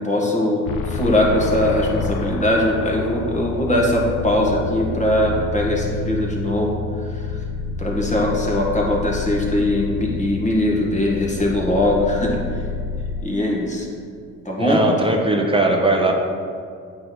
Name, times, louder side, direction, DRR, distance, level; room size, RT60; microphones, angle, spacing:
voice 1, 0.0-6.8 7.1-7.4 7.8-12.6 13.2-13.9 14.5-14.8, left 1 dB, 20° left, -3 dB, 1.7 m, -21 dB
sound 1, 0.6-13.2, left 4 dB, 60° left, 0.6 m, -28 dB
voice 2, 14.6-16.1, right 2 dB, 15° right, 1 dB, 1.1 m, -19 dB
8.6 x 4.2 x 4.0 m, 2.2 s
hypercardioid pair, 50°, 39 cm